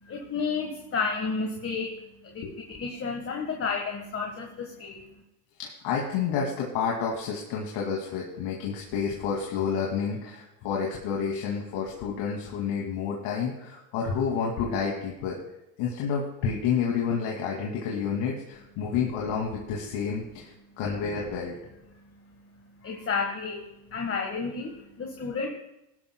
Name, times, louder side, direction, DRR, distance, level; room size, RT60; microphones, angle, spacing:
voice 1, 0.0-5.1 21.9-25.5, left 5 dB, 25° left, 2 dB, 1.5 m, -32 dB
voice 2, 5.6-15.4 15.8-21.5, left 6 dB, 65° left, -2 dB, 2.5 m, -29 dB
18.5 x 11.5 x 2.3 m, 0.91 s
supercardioid pair, 100°, 50 cm